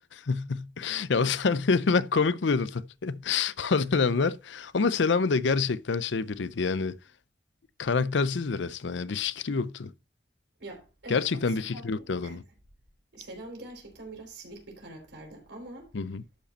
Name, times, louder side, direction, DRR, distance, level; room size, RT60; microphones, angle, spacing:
voice 1, 0.1-6.9 7.8-9.9 11.1-12.4 15.9-16.2, left 4 dB, 75° left, 0.6 m, -27 dB
voice 2, 10.6-12.4 13.1-15.9, right 2 dB, 70° right, 4.2 m, -44 dB
12.0 x 5.1 x 4.3 m
head